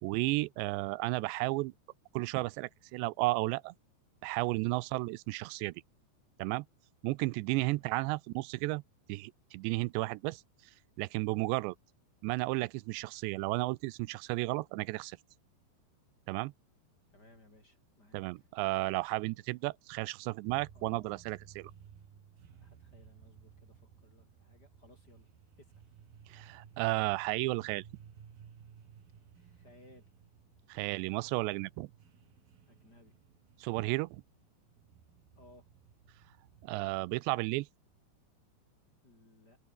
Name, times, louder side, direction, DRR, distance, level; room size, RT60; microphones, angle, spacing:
voice 1, 0.0-1.7 2.1-3.7 4.2-5.7 6.4-6.7 7.0-8.8 9.1-10.4 11.0-11.8 12.2-15.2 16.3-16.5 18.1-21.7 26.3-27.8 30.7-31.9 33.6-34.2 36.6-37.7, right 22 dB, 85° right, 2.8 m, -33 dB
voice 2, 7.8-8.1 17.1-18.5 20.7-21.1 22.5-25.3 25.6-25.9 29.3-30.1 32.7-33.1 35.3-35.7 39.0-39.6, left 1 dB, 20° left, 7.4 m, -61 dB
sound 1, 20.5-37.2, right 7 dB, 60° right, 4.8 m, -58 dB
omnidirectional pair, 5.0 m